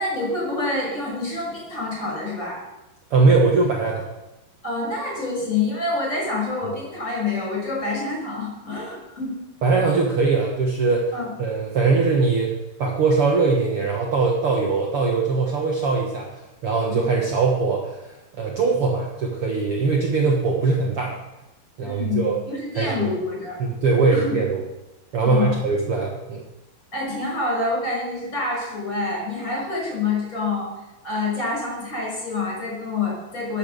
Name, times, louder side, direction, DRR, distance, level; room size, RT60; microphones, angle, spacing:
voice 1, 0.0-2.6 4.6-9.3 11.1-11.3 16.9-17.0 21.8-23.6 24.1-24.4 25.2-25.5 26.9-30.7 31.0-33.6, left 3 dB, 20° left, -3 dB, 6.1 m, -27 dB
voice 2, 3.1-4.1 9.6-11.1 11.4-12.5 12.8-16.3 16.6-21.2 21.8-22.4 22.7-23.1 23.6-24.6 25.1-26.4, right 4 dB, 70° right, -1 dB, 1.3 m, -21 dB
14.0 x 7.1 x 6.9 m, 0.97 s
omnidirectional pair, 4.7 m